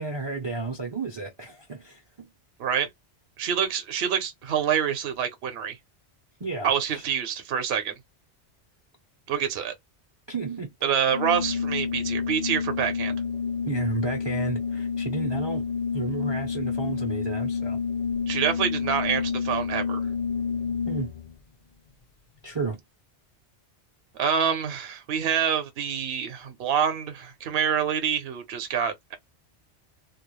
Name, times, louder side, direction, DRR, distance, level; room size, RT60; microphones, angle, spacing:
voice 1, 0.0-2.3 6.4-7.0 10.3-10.7 13.7-15.6 15.9-17.8 20.9-21.1 22.4-22.8, right 4 dB, 35° right, 0.4 m, -32 dB
voice 2, 3.4-5.8 6.6-7.9 9.3-9.7 10.8-13.2 18.3-20.0 24.2-29.1, right 8 dB, 65° right, 0.8 m, -26 dB
Organ, 11.1-21.3, left 6 dB, 55° left, 0.4 m, -29 dB
2.3 x 2.0 x 2.8 m
omnidirectional pair, 1.2 m